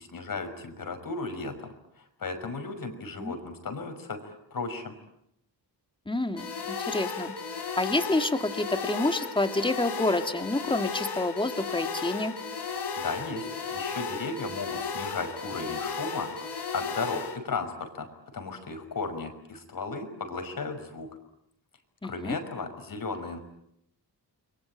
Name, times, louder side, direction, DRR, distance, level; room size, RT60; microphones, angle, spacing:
voice 1, 0.0-4.9 13.0-18.1 18.3-21.1 22.0-23.4, left 3 dB, 55° left, 7 dB, 5.8 m, -35 dB
voice 2, 6.1-7.3 7.8-12.3 22.0-22.4, left 2 dB, 10° left, 7 dB, 2.3 m, -28 dB
sound 1, 6.4-17.4, left 5 dB, 75° left, 3.7 m, -34 dB
30.0 x 22.0 x 9.0 m, 0.78 s
cardioid pair, 95°, 40 cm